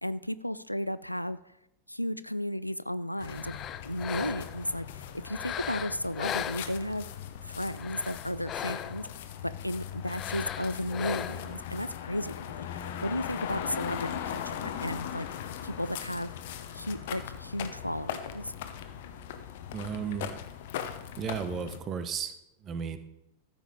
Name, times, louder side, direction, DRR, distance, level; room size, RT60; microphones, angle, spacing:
voice 1, 0.0-1.4 1.9-3.6 3.8-7.1 7.4-9.1 9.4-15.3 15.6-16.3 16.7-18.5, left 1 dB, 90° left, 16 dB, 0.4 m, -34 dB
sound 1, 3.2-21.8, left 9 dB, 55° left, 1.0 m, -39 dB
sound 2, 3.2-4.7 5.2-7.1 7.7-9.2 10.0-11.6, left 10 dB, 30° left, 0.5 m, -38 dB
voice 2, 19.7-20.3 21.1-22.3 22.6-23.0, right 7 dB, 30° right, 10 dB, 1.1 m, -34 dB
14.0 x 7.1 x 5.1 m, 0.87 s
figure-of-eight pair, 90°, 0 cm